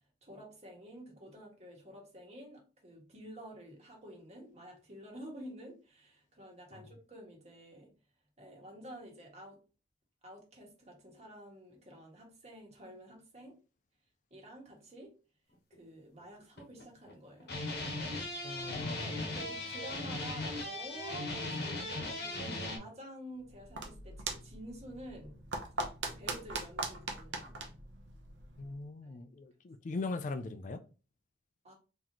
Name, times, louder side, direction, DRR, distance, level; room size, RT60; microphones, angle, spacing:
voice 1, 0.0-7.9 8.4-9.6 10.2-13.6 14.3-15.2 15.8-17.5 18.8-25.4 26.1-27.6 29.0-29.1 31.6-31.7, right 1 dB, 40° right, 1.4 m, -50 dB
sound 1, 15.7-15.8 16.4-17.1 17.4-22.8, left 2 dB, 60° left, 1.0 m, -38 dB
voice 2, 18.4-19.3 28.6-30.8, left 3 dB, 45° left, 0.4 m, -40 dB
sound 2, 23.4-28.8, right 3 dB, 85° right, 0.8 m, -41 dB
3.9 x 3.0 x 2.9 m
head